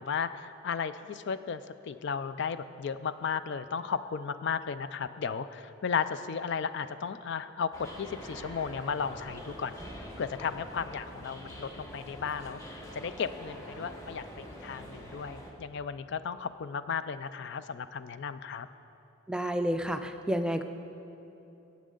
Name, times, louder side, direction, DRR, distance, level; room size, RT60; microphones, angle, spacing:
voice 1, 0.0-1.6 1.9-9.7 10.2-12.6 12.9-18.7, left 6 dB, 60° left, 12 dB, 0.4 m, -34 dB
sound 1, 7.7-15.5, equal, 15° left, 1.4 m, -45 dB
voice 2, 19.3-20.6, equal, 5° right, 7 dB, 0.4 m, -30 dB
20.0 x 8.3 x 3.8 m, 2.9 s
head